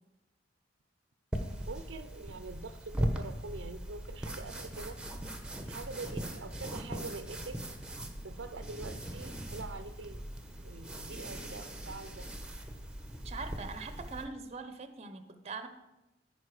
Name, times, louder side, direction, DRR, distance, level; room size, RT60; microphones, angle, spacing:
sound 1, 1.3-14.2, right 1 dB, 5° right, 1.0 m, -39 dB
voice 1, 1.7-5.0 5.7-7.6 8.2-12.3, right 3 dB, 90° right, 11 dB, 0.6 m, -45 dB
voice 2, 13.2-15.7, right 4 dB, 35° right, 9 dB, 0.7 m, -42 dB
14.0 x 5.3 x 4.9 m, 0.99 s
head